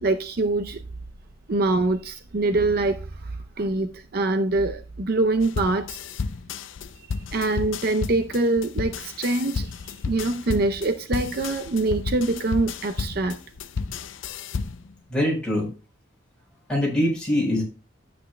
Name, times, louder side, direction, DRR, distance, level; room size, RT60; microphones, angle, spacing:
voice 1, 0.0-0.8 1.5-6.0 7.0-13.4, right 2 dB, 50° right, 0.6 m, -24 dB
sound 1, 5.4-14.9, left 4 dB, 80° left, 0.5 m, -32 dB
voice 2, 15.1-15.7 16.7-17.6, left 1 dB, 5° left, 4.3 m, -23 dB
12.5 x 8.4 x 2.2 m
head